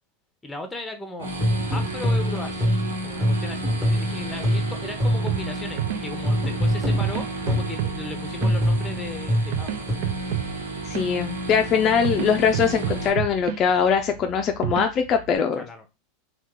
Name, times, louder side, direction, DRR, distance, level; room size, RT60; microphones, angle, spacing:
voice 1, 0.4-1.3 1.7-2.8 3.0-10.1 15.5-15.8, left 2 dB, 10° left, 0.8 m, -37 dB
sound 1, 1.2-13.1, right 1 dB, 85° right, 1.0 m, -32 dB
sound 2, 1.4-5.5 6.2-7.8 8.4-9.9, equal, 10° right, 1.3 m, -24 dB
sound 3, 5.3-15.4, right 10 dB, 65° right, 0.5 m, -32 dB
voice 2, 10.9-15.6, left 7 dB, 40° left, 0.4 m, -22 dB
2.8 x 2.3 x 3.6 m
hypercardioid pair, 100°, 0 cm